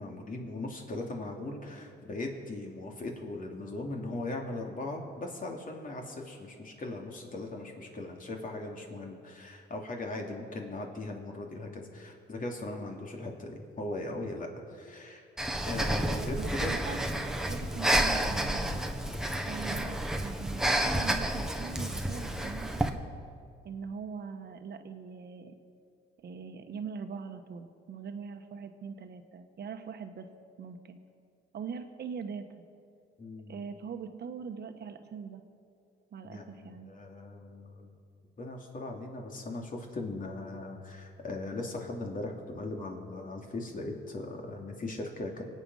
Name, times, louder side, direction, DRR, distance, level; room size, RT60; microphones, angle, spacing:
voice 1, 0.0-15.3 15.7-16.7 17.2-17.3 19.0-19.3 33.2-33.6 36.2-37.9 38.4-45.4, left 2 dB, 45° left, 1 dB, 2.9 m, -39 dB
Breathing, 15.4-22.9, right 1 dB, 5° right, 1.3 m, -30 dB
voice 2, 16.0-17.1 17.5-18.8 19.4-22.9 23.6-25.6 26.2-30.3 30.6-31.0 31.5-32.4 33.5-35.4 36.1-36.9, right 6 dB, 55° right, 7 dB, 1.3 m, -42 dB
24.0 x 9.0 x 5.6 m, 2.3 s
cardioid pair, 90°, 20 cm